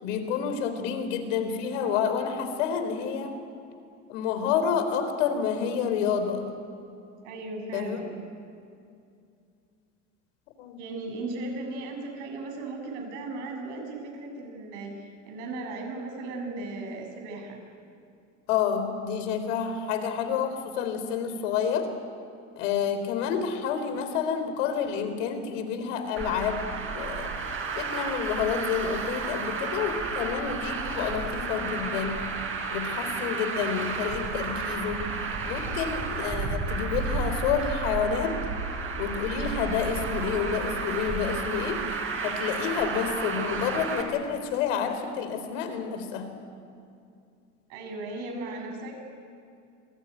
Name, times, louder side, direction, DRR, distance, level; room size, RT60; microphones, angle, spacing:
voice 1, 0.0-3.3 4.1-6.4 7.7-8.0 10.6-10.8 18.5-21.9 22.6-26.6 26.9-27.3 27.8-32.2 32.7-35.1 35.4-38.4 39.0-41.8 42.2-46.3, left 7 dB, 80° left, 8 dB, 4.0 m, -29 dB
voice 2, 7.2-8.1 10.8-17.6 47.7-48.9, right 2 dB, 75° right, 2 dB, 7.4 m, -36 dB
Traffic noise roadway noise, 26.2-44.0, right 4 dB, 35° right, 5.5 m, -32 dB
26.5 x 18.5 x 9.3 m, 2.4 s
supercardioid pair, 95°, 37 cm